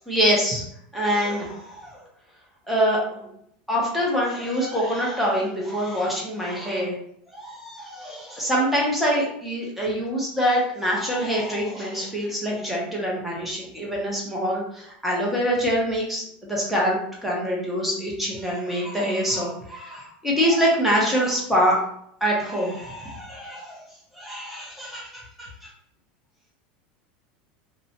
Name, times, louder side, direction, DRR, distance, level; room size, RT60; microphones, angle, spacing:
voice 1, 0.1-0.6 0.9-2.0 2.7-3.3 3.7-6.9 7.3-21.8 22.2-23.8 24.1-25.7, equal, 5° right, -4 dB, 0.7 m, -25 dB
2.5 x 2.1 x 2.8 m, 0.71 s
supercardioid pair, 150°, 5 cm